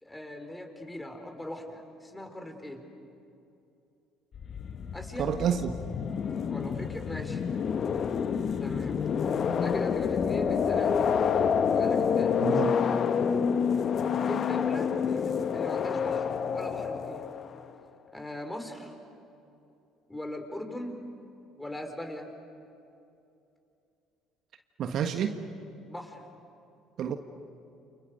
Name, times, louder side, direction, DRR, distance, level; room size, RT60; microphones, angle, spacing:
voice 1, 0.0-2.8 4.9-5.3 6.5-7.4 8.6-9.0 9.5-11.0 11.7-12.4 14.3-17.3 18.1-18.9 20.1-21.0 21.6-22.3 25.9-26.2, left 1 dB, 10° left, 4 dB, 4.7 m, -39 dB
sound 1, 4.3-17.7, left 7 dB, 45° left, 1.1 m, -28 dB
voice 2, 5.2-5.8 12.4-12.7 24.8-25.5 27.0-27.2, right 8 dB, 55° right, 7 dB, 1.4 m, -29 dB
29.5 x 28.5 x 6.7 m, 2.7 s
hypercardioid pair, 60°, 0 cm